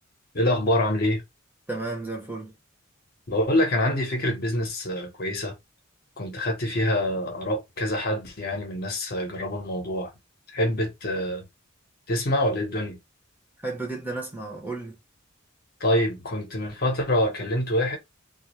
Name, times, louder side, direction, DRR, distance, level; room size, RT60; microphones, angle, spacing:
voice 1, 0.3-1.2 3.3-5.5 6.2-10.1 10.5-11.4 12.1-13.0 15.8-18.0, left 1 dB, 50° left, 0.8 m, -25 dB
voice 2, 1.7-2.5 13.6-15.0, right 3 dB, 10° right, 0.7 m, -33 dB
2.3 x 2.1 x 2.9 m
head